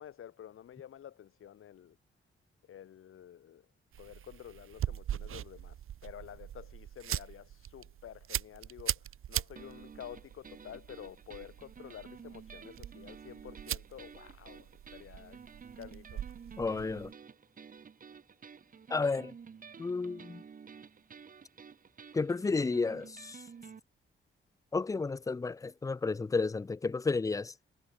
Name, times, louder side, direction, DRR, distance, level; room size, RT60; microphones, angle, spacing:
voice 1, 0.0-2.0 2.6-3.7 4.0-15.4 15.8-16.2, left 10 dB, 85° left, 3.3 m, -50 dB
sound 1, 3.9-17.1, right 11 dB, 90° right, 1.4 m, -41 dB
sound 2, 9.6-23.8, right 6 dB, 40° right, 3.7 m, -52 dB
voice 2, 16.6-17.1 18.9-19.3 19.8-20.4 22.1-23.4 24.7-27.5, left 4 dB, 15° left, 0.5 m, -32 dB
wide cardioid pair, 175°, 21 cm